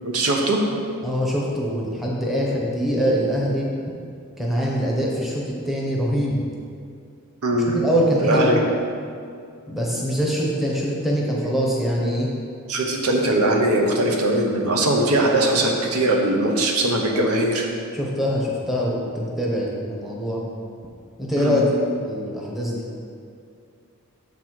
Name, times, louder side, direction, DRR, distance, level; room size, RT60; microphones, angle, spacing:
voice 1, 0.0-0.6 7.4-7.8 8.2-8.6 12.7-17.7 21.4-21.6, right 1 dB, 85° right, 1 dB, 0.8 m, -20 dB
voice 2, 1.0-3.7 4.4-6.4 7.7-8.5 9.7-12.3 17.1-17.3 17.9-20.4 21.2-21.7 22.0-22.8, equal, ahead, -4 dB, 0.8 m, -23 dB
7.1 x 4.0 x 4.6 m, 2.4 s
head